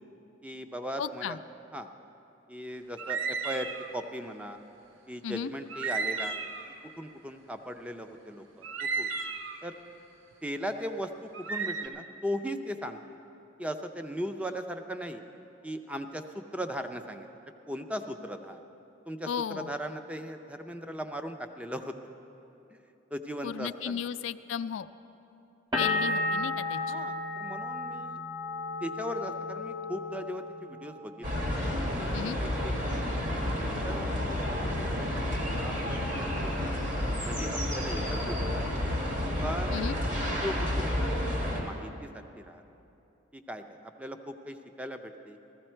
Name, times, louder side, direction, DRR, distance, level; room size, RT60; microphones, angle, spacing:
voice 1, 0.4-1.4 1.7-1.9 2.5-4.6 5.1-6.6 7.0-8.7 9.0-9.1 9.6-9.8 10.4-13.0 13.6-15.2 15.6-17.3 17.7-18.6 19.1-22.0 22.7-22.8 23.1-24.1 26.9-28.2 28.8-31.5 31.9-33.0 33.8-35.3 35.6-36.8 37.2-38.9 39.4-39.8 40.1-42.6 43.3-45.4, equal, 5° right, 7 dB, 0.5 m, -38 dB
voice 2, 1.0-1.4 5.2-5.5 19.3-19.7 23.4-24.9 25.8-27.1 32.1-32.4 39.7-40.0, left 8 dB, 70° left, 12 dB, 0.3 m, -34 dB
sound 1, 3.0-3.9 5.7-6.7 8.6-9.6 11.3-11.9, right 4 dB, 80° right, 0.7 m, -33 dB
sound 2, 25.7-31.4 31.7-32.4, left 2 dB, 20° right, 1.2 m, -33 dB
sound 3, 31.2-41.6, left 1 dB, 40° right, 1.7 m, -30 dB
15.0 x 14.0 x 4.4 m, 2.9 s
head